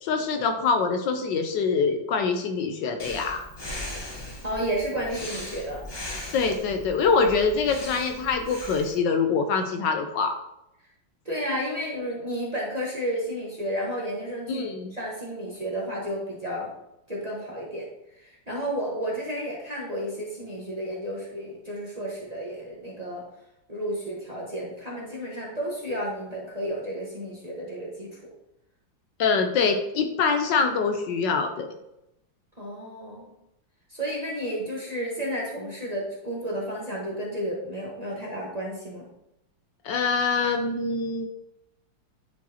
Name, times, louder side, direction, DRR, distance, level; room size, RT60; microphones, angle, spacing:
voice 1, 0.0-3.4 6.3-10.4 14.5-14.9 29.2-31.7 39.8-41.2, left 5 dB, 75° left, 5 dB, 1.2 m, -24 dB
Breathing, 3.0-9.0, left 1 dB, 30° left, 0.5 m, -38 dB
voice 2, 4.4-5.8 11.2-16.7 17.1-17.8 18.1-23.2 23.7-28.2 32.6-33.3 33.9-39.1, equal, 25° right, -4 dB, 1.1 m, -32 dB
10.0 x 4.7 x 2.8 m, 0.85 s
omnidirectional pair, 2.1 m